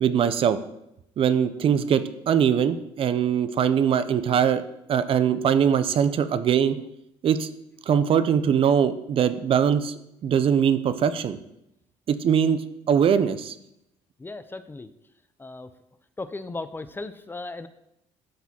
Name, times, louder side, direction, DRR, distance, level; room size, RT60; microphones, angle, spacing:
voice 1, 0.0-0.6 1.2-4.6 4.9-6.8 7.2-7.5 7.9-9.9 10.2-11.4 12.1-12.6 12.9-13.6, right 8 dB, 50° right, 13 dB, 0.5 m, -21 dB
voice 2, 14.2-14.9 15.4-15.7 16.2-17.7, left 3 dB, 15° left, 12 dB, 0.4 m, -36 dB
11.5 x 4.0 x 2.8 m, 0.82 s
supercardioid pair, 85°, 12 cm